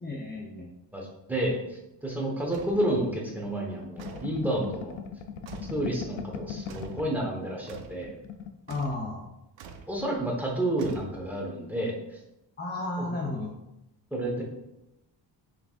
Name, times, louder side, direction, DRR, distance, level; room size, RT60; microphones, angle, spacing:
voice 1, 0.0-0.7 8.7-9.3 12.6-13.5, left 2 dB, 25° left, -2 dB, 0.6 m, -33 dB
voice 2, 0.9-5.0 5.7-8.2 9.9-11.9 13.0-13.1 14.1-14.4, right 1 dB, 5° right, -2 dB, 1.1 m, -30 dB
sound 1, 2.5-2.9 4.0-4.4 5.5-5.9 6.7-7.1 7.7-8.0 8.7-9.1 9.6-9.9 10.8-11.4, right 6 dB, 90° right, 0.6 m, -45 dB
sound 2, 2.7-7.3 7.6-7.7 8.0-8.6, left 7 dB, 85° left, 0.5 m, -40 dB
5.9 x 3.4 x 2.4 m, 0.87 s
cardioid pair, 100°, 45 cm